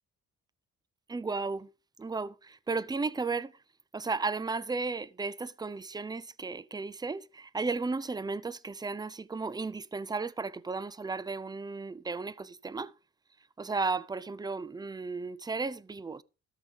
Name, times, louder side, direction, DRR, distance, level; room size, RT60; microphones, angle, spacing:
voice 1, 1.1-1.7 2.0-3.5 3.9-12.9 13.6-16.2, right 4 dB, 15° right, 0.6 m, -34 dB
13.0 x 6.7 x 5.1 m
cardioid pair, 90°, 30 cm